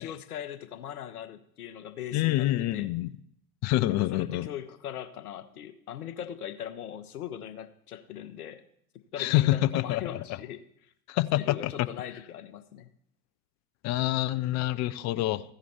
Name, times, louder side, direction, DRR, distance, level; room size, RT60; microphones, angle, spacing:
voice 1, 0.0-2.9 3.9-8.6 9.1-10.9 11.3-12.9, left 10 dB, 80° left, 10 dB, 0.9 m, -40 dB
voice 2, 2.1-3.1 3.6-4.5 9.2-10.2 11.1-11.7 13.8-15.4, left 16 dB, 40° left, 16 dB, 0.5 m, -26 dB
15.0 x 5.1 x 4.2 m, 0.69 s
hypercardioid pair, 80°, 44 cm